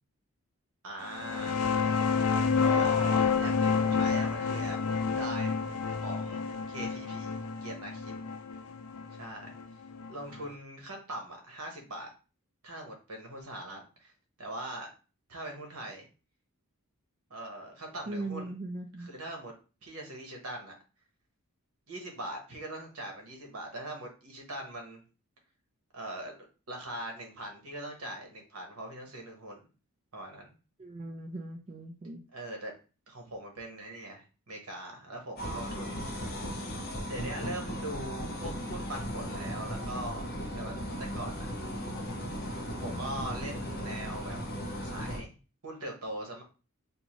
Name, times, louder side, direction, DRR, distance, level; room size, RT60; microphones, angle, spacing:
voice 1, 0.8-2.0 2.6-4.8 5.2-5.6 6.0-8.3 9.2-9.6 10.1-12.1 12.6-14.1 14.4-14.9 15.3-16.1 17.3-18.5 19.0-19.5 19.8-20.7 21.9-25.0 25.9-29.6 30.1-30.5 32.3-32.7 33.1-36.4 37.1-40.3 40.5-40.7 41.0-41.5 42.8-44.4 44.8-45.3 45.6-46.4, right 1 dB, 70° right, 2 dB, 1.1 m, -41 dB
sound 1, 1.1-10.4, left 5 dB, 75° left, 0.5 m, -29 dB
voice 2, 18.1-19.1 30.8-32.2, right 2 dB, 30° right, 3 dB, 0.3 m, -39 dB
sound 2, 35.4-45.2, equal, 45° left, 0.8 m, -36 dB
3.6 x 2.6 x 3.0 m, 0.34 s
head